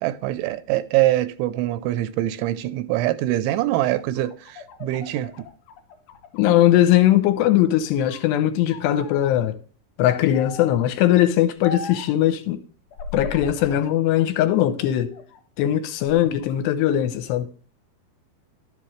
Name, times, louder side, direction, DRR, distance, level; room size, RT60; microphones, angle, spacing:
voice 1, 0.0-5.5, right 15 dB, 90° right, 3.1 m, -24 dB
sound 1, 3.8-7.0 7.4-8.3 8.7-9.3 10.3-10.9 11.6-12.2 12.9-14.0 14.4-15.4 15.9-16.6, left 4 dB, 55° left, 2.5 m, -39 dB
voice 2, 6.4-9.6 10.0-12.6 13.1-15.2 15.6-17.5, left 12 dB, 80° left, 2.8 m, -20 dB
11.5 x 7.5 x 3.2 m
omnidirectional pair, 5.2 m